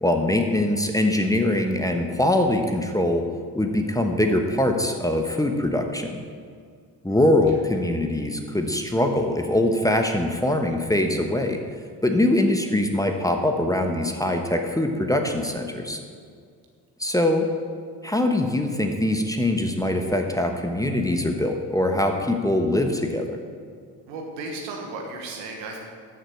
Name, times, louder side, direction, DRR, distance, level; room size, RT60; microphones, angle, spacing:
voice 1, 0.0-3.3 3.5-6.1 7.0-11.6 12.0-16.0 17.0-17.5 18.0-23.4, left 1 dB, 5° left, 4 dB, 1.2 m, -23 dB
voice 2, 24.1-25.8, right 3 dB, 80° right, 1 dB, 1.5 m, -34 dB
13.0 x 6.5 x 4.6 m, 2.1 s
hypercardioid pair, 45°, 50 cm